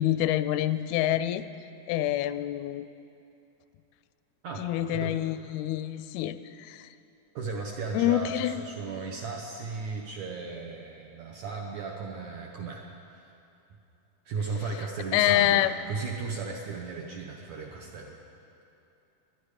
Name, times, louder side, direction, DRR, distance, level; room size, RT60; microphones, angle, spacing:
voice 1, 0.0-1.5 1.9-2.9 4.6-6.9 7.9-8.6 15.1-15.7, left 13 dB, 90° left, 13 dB, 2.5 m, -26 dB
voice 2, 4.4-5.2 7.4-12.8 13.1-13.3 14.3-18.2, right 4 dB, 70° right, 0 dB, 1.8 m, -36 dB
20.5 x 11.5 x 4.9 m, 2.7 s
omnidirectional pair, 4.3 m